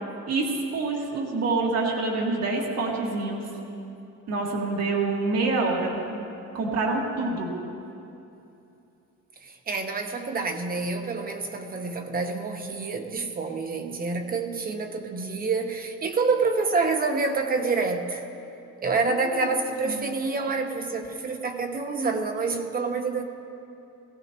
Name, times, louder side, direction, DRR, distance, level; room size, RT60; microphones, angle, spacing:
voice 1, 0.3-3.4 4.3-6.0 6.5-7.5 19.1-19.5 19.9-20.0, right 3 dB, 55° right, -2 dB, 2.0 m, -26 dB
voice 2, 9.4-18.2 18.8-23.2, right 4 dB, 30° right, 5 dB, 0.9 m, -27 dB
19.5 x 16.0 x 3.0 m, 2.8 s
cardioid pair, 160°, 31 cm